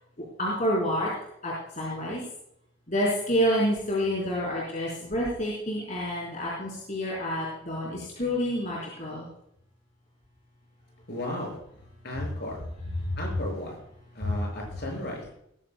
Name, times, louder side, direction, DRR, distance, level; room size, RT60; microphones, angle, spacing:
voice 1, 0.4-1.1 1.4-2.2 2.9-9.3 14.2-14.4, equal, 40° left, -6 dB, 4.3 m, -28 dB
voice 2, 11.1-11.6 12.0-12.6 13.2-13.8 14.1-15.3, left 1 dB, 55° left, 0 dB, 6.5 m, -35 dB
19.5 x 14.5 x 2.3 m, 0.75 s
head